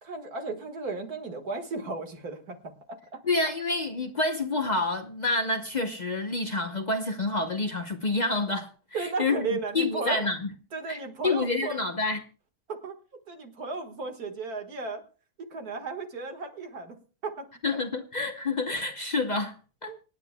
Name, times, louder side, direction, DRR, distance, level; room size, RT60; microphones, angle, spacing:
voice 1, 0.0-3.2 8.9-10.2 10.7-11.8 12.7-13.0 13.3-15.0 15.4-17.0 17.2-17.5 19.9-20.0, right 3 dB, 80° right, 2.2 m, -35 dB
voice 2, 3.2-10.5 10.9-12.2 17.6-19.6 19.8-19.9, left 2 dB, 35° left, 0.9 m, -28 dB
26.5 x 9.6 x 2.2 m
omnidirectional pair, 1.6 m